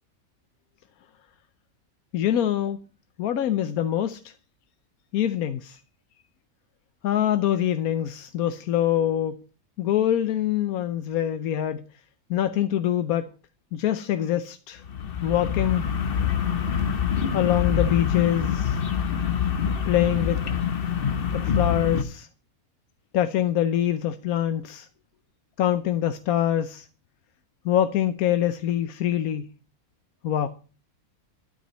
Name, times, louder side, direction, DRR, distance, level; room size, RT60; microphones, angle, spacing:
voice 1, 2.1-2.8 3.2-4.3 5.1-5.8 7.0-9.4 9.8-11.8 12.3-13.3 13.7-14.8 15.2-15.8 17.3-18.8 19.9-20.4 21.3-22.3 23.1-24.9 25.6-26.9 27.6-29.5 30.2-30.5, left 11 dB, 80° left, 1.2 m, -24 dB
sound 1, 14.8-22.0, left 7 dB, 45° left, 1.0 m, -25 dB
12.5 x 5.2 x 7.9 m
omnidirectional pair, 1.5 m